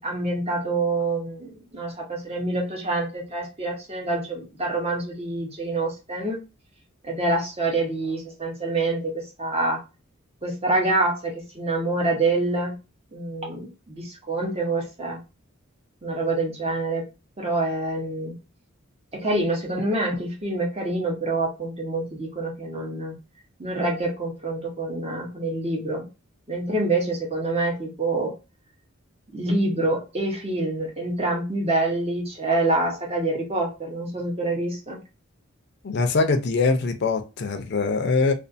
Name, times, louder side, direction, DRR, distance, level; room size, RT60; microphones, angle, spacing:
voice 1, 0.0-6.4 7.0-9.8 10.4-12.8 13.1-15.2 16.0-17.0 17.4-18.3 19.1-23.1 23.6-26.1 26.5-28.3 29.3-35.0, right 2 dB, 30° right, 0.9 m, -26 dB
voice 2, 35.8-38.3, left 4 dB, 55° left, 0.5 m, -23 dB
2.4 x 2.4 x 2.5 m
head